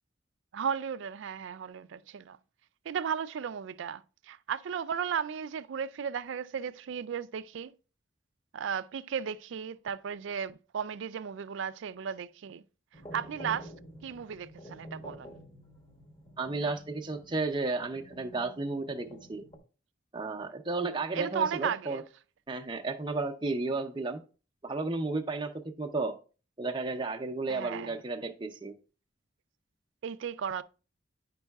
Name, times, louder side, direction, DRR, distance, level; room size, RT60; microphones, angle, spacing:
voice 1, 0.5-2.4 2.9-7.7 8.5-12.6 13.1-13.7 14.0-15.3 21.1-22.0 27.5-27.9 30.0-30.6, right 7 dB, 65° right, 0.3 m, -35 dB
sound 1, 12.9-19.6, equal, 25° left, 1.1 m, -49 dB
voice 2, 16.4-19.4 20.1-22.0 22.5-24.2 24.6-25.5 25.8-26.1 26.6-28.7, right 3 dB, 25° right, 0.6 m, -33 dB
9.8 x 5.4 x 2.3 m
head